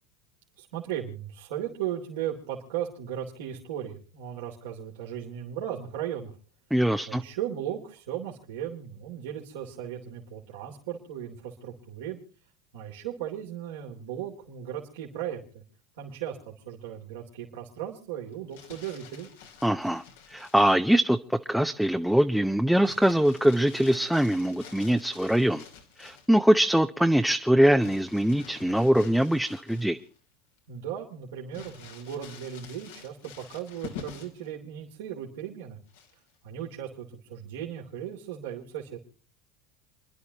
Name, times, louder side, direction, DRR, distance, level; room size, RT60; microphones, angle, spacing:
voice 1, 0.6-6.3 7.1-12.2 12.7-15.6 16.0-19.3 30.7-35.8 36.4-39.0, right 10 dB, 80° right, 3.0 m, -36 dB
voice 2, 6.7-7.2 19.6-20.0 20.3-21.2 21.5-25.6 26.0-30.0, equal, ahead, 0.7 m, -23 dB
Crumpling crinkling, 18.3-20.9 22.8-26.4 27.8-30.2 30.6-30.7 31.5-34.5 35.9-36.3, left 6 dB, 90° left, 2.9 m, -47 dB
29.5 x 11.0 x 2.9 m
supercardioid pair, 105°, 0 cm